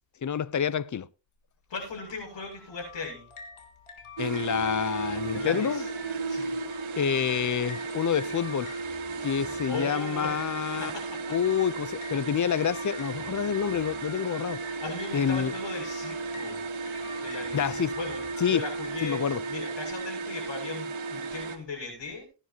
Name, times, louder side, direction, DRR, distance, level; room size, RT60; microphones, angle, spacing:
voice 1, 0.2-1.1 4.2-5.8 7.0-8.7 9.2-10.9 11.3-14.6 15.1-15.5 17.5-18.0 18.4-18.6 19.0-19.4, left 8 dB, 35° left, 0.7 m, -28 dB
voice 2, 1.7-3.3 5.3-5.9 6.3-6.5 9.7-11.4 14.8-16.6 17.2-22.3, left 4 dB, 60° left, 6.9 m, -38 dB
sound 1, 1.8-19.1, left 4 dB, 75° left, 3.4 m, -49 dB
sound 2, 4.2-21.6, right 3 dB, 70° right, 2.6 m, -34 dB
21.5 x 9.9 x 2.9 m
cardioid pair, 90°, 50 cm